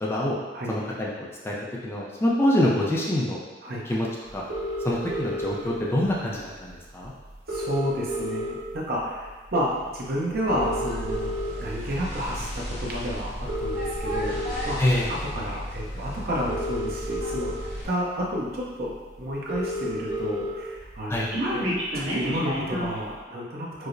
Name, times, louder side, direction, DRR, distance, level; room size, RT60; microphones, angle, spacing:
voice 1, 0.0-0.4 0.7-1.5 1.8-3.4 3.8-4.4 4.8-7.1 14.8-15.1 21.1-21.3, left 1 dB, 15° left, -4 dB, 0.4 m, -25 dB
sound 1, 4.5-5.5 6.7-6.8 7.0-7.1 7.3-8.8 9.3-9.5 10.3-11.5 12.2-12.4 13.3-14.5 15.7-15.8 16.3-17.5 18.2-18.3 18.6-18.7 18.9-19.0 19.2-20.5 20.8-23.0, equal, 80° right, 1.3 m, -30 dB
voice 2, 7.5-11.3 11.6-14.4 14.7-14.8 15.3-17.5 17.8-21.7 21.9-23.9, equal, 55° right, -4 dB, 0.7 m, -30 dB
sound 2, 10.5-17.9, equal, 50° left, 1.4 m, -34 dB
4.7 x 2.0 x 2.6 m, 1.3 s
head